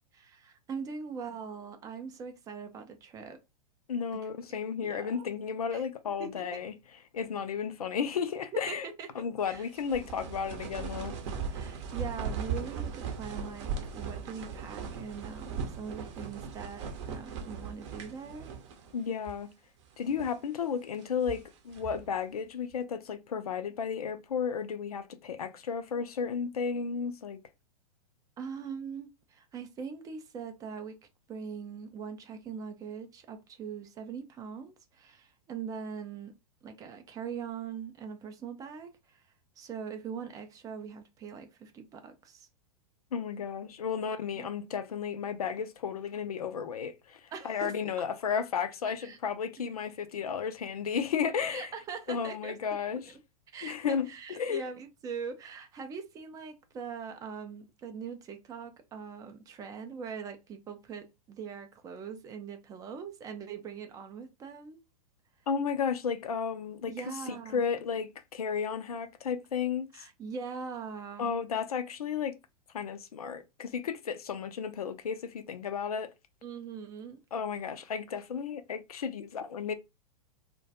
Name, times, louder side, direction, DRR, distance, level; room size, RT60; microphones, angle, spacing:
voice 1, 0.2-3.4 4.8-5.3 5.7-5.9 6.2-6.4 8.7-9.7 11.5-18.5 28.4-31.0 31.3-36.3 36.6-42.5 44.3-44.5 47.3-48.1 49.0-49.2 51.5-52.5 53.5-64.8 66.9-67.7 69.9-71.4 76.4-77.2, right 6 dB, 20° right, 0.4 m, -42 dB
voice 2, 3.9-6.7 7.1-8.9 9.2-11.2 18.9-19.5 20.0-27.4 43.1-51.7 52.1-53.1 53.6-54.6 65.5-67.0 67.3-70.1 71.2-72.4 72.7-76.1 77.3-79.7, left 6 dB, 70° left, 0.4 m, -33 dB
sound 1, 9.5-19.0 19.2-19.4 20.0-20.4 21.0-22.1, right 6 dB, 45° right, 0.7 m, -38 dB
2.2 x 2.2 x 2.7 m
figure-of-eight pair, 100°, 20 cm